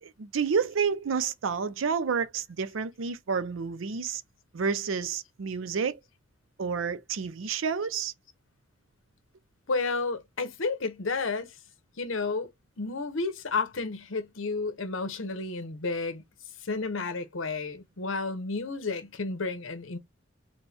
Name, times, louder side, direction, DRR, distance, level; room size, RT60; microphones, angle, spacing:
voice 1, 0.0-4.2 4.5-6.0 6.6-8.1, right 6 dB, 75° right, 0.5 m, -29 dB
voice 2, 9.7-11.5 12.0-12.5 12.8-16.2 16.6-20.0, left 3 dB, 70° left, 0.9 m, -31 dB
4.2 x 2.2 x 3.4 m
head